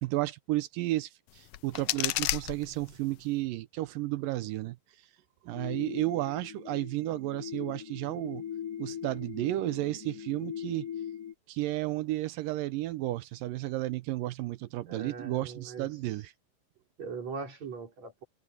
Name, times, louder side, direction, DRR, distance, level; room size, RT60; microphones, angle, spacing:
voice 1, 0.0-4.8 5.4-8.4 8.8-10.9 11.5-16.3, right 17 dB, 80° right, 2.2 m, -32 dB
sound 1, 1.3-3.3, left 16 dB, 80° left, 1.9 m, -33 dB
sound 2, 5.5-11.3, left 9 dB, 25° left, 4.0 m, -41 dB
voice 2, 14.9-15.9 17.0-18.2, right 5 dB, 45° right, 5.8 m, -40 dB
omnidirectional pair, 4.3 m